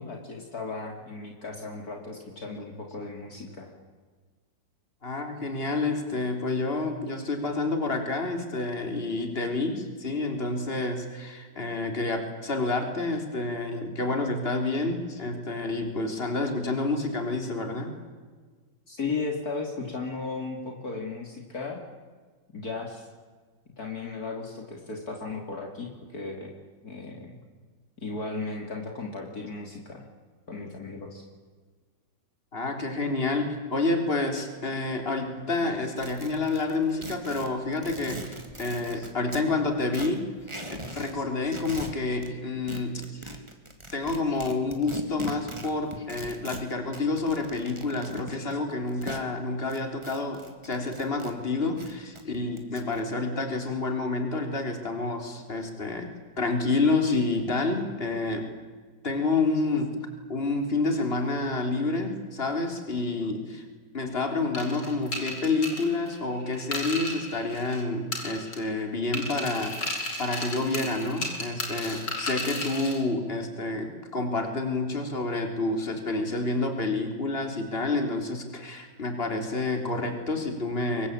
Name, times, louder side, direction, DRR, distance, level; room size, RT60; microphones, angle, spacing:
voice 1, 0.0-3.7 18.9-21.8 22.5-23.1 23.8-26.5 26.8-27.4 28.0-30.0 30.5-31.3, left 3 dB, 55° left, 2 dB, 3.5 m, -35 dB
voice 2, 5.0-17.9 32.5-40.3 40.7-43.4 43.9-58.5 59.0-60.0 60.3-63.7 63.9-81.1, left 3 dB, 30° left, 5 dB, 3.9 m, -29 dB
sound 1, 36.0-39.5 39.8-41.2 41.4-42.3 42.7-49.3 49.7-51.3 51.6-53.0, right 1 dB, 15° right, 2.7 m, -40 dB
sound 2, 64.5-67.8 68.1-68.8 69.1-73.0, left 2 dB, 80° left, 5.0 m, -34 dB
25.0 x 23.0 x 8.8 m, 1.4 s
omnidirectional pair, 1.9 m